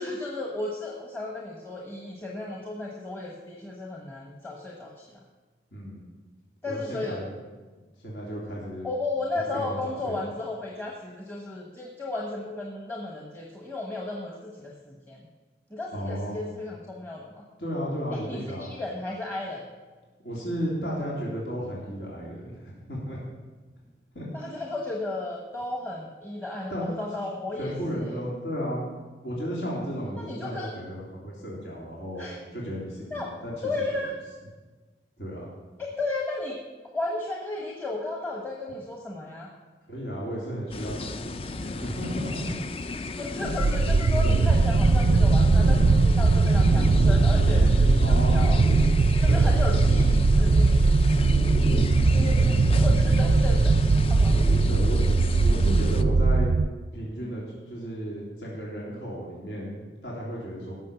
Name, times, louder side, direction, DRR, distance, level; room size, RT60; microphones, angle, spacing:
voice 1, 0.0-5.1 6.6-7.2 8.8-15.2 15.7-17.4 18.1-19.6 24.3-28.2 30.2-30.7 32.2-32.4 33.1-33.3 33.6-34.1 35.8-36.6 36.9-39.5 43.2-48.6 49.2-51.5 52.1-54.4, left 2 dB, 10° left, -2 dB, 1.2 m, -34 dB
voice 2, 5.7-6.1 6.6-7.3 8.0-8.9 9.3-10.3 15.9-16.4 17.6-18.7 20.2-23.2 24.1-24.3 26.7-26.9 27.6-28.9 29.2-33.5 33.9-34.0 35.2-35.5 39.9-42.5 43.3-43.6 48.0-48.5 49.3-50.0 54.7-56.5 56.9-60.7, equal, 70° left, -5 dB, 3.2 m, -34 dB
sound 1, 40.7-56.0, left 2 dB, 30° left, 0.5 m, -33 dB
sound 2, 43.5-56.7, right 3 dB, 50° right, 0.4 m, -20 dB
17.0 x 6.5 x 7.0 m, 1.3 s
head